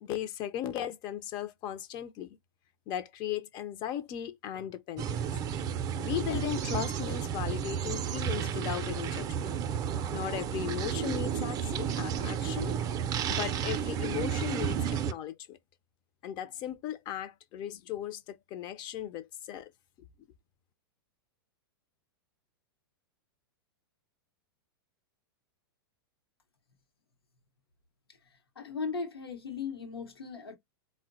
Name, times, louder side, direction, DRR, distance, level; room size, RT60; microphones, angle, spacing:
voice 1, 0.0-2.4 2.9-5.2 6.0-9.6 10.1-12.8 13.3-15.6 16.2-19.7, left 11 dB, 35° left, 0.4 m, -37 dB
sound 1, 5.0-15.1, right 8 dB, 30° right, 0.4 m, -32 dB
voice 2, 28.6-30.6, left 5 dB, 90° left, 0.8 m, -37 dB
3.7 x 2.1 x 2.4 m
hypercardioid pair, 105°, 12 cm